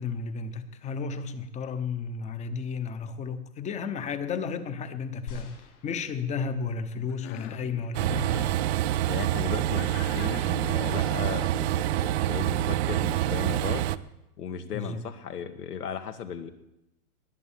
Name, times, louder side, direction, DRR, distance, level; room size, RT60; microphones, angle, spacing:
voice 1, 0.0-8.4 14.7-15.0, left 5 dB, 15° left, 11 dB, 0.9 m, -33 dB
sound 1, 5.3-6.8 7.5-7.6, left 3 dB, 70° left, 8.0 m, -45 dB
Cough, 7.1-7.7 8.1-8.6 9.7-11.3, left 11 dB, 40° left, 1.3 m, -44 dB
Train, 7.9-14.0, right 13 dB, 45° right, 0.7 m, -26 dB
voice 2, 9.1-13.8 14.4-16.5, left 7 dB, 85° left, 8 dB, 2.0 m, -36 dB
20.0 x 8.0 x 7.2 m, 0.88 s
hypercardioid pair, 140°, 45 cm